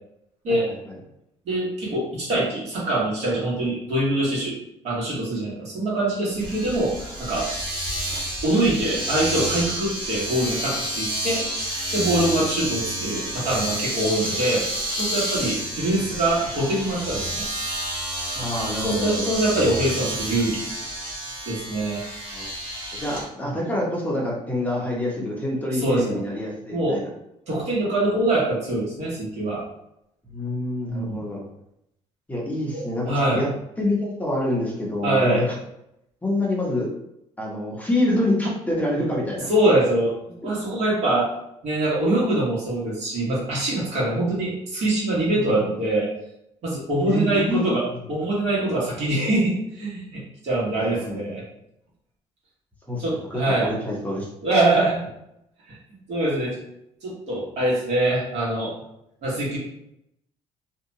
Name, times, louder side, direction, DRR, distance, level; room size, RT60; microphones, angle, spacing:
voice 1, 1.4-4.5 4.8-7.5 8.4-11.4 11.9-14.6 15.0-17.5 18.8-20.6 21.5-22.0 23.4-23.6 25.7-26.2 26.7-27.0 27.5-29.6 30.9-31.3 32.7-33.4 35.0-35.5 39.2-39.3 39.5-40.1 40.4-41.3 41.6-46.1 46.6-51.4 53.0-53.7 54.4-55.0 55.7-55.8 56.1-56.6 57.0-58.7 59.2-59.6, right 1 dB, 65° right, -5 dB, 1.3 m, -24 dB
Domestic sounds home sounds, 6.4-23.2, right 1 dB, 45° right, 1.2 m, -30 dB
voice 2, 18.4-19.3 22.3-22.5 22.9-27.1 30.2-31.5 32.3-33.5 33.8-35.5 36.2-36.9 37.4-39.5 45.4-45.5 47.1-47.7 50.8-51.2 52.9-53.0 53.3-54.3, left 1 dB, 10° left, -3 dB, 0.7 m, -26 dB
2.6 x 2.2 x 2.7 m, 0.80 s
cardioid pair, 120°, 12 cm